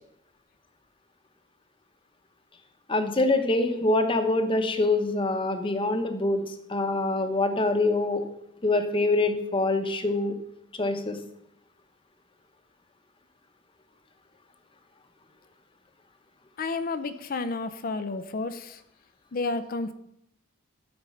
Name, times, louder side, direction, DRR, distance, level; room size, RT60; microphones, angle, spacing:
voice 1, 2.9-6.4 6.7-8.2 8.6-10.3 10.8-11.2, left 2 dB, 25° left, 7 dB, 0.9 m, -25 dB
voice 2, 16.6-18.8 19.3-19.9, left 3 dB, 45° left, 10 dB, 0.5 m, -31 dB
11.5 x 5.2 x 5.7 m, 0.77 s
head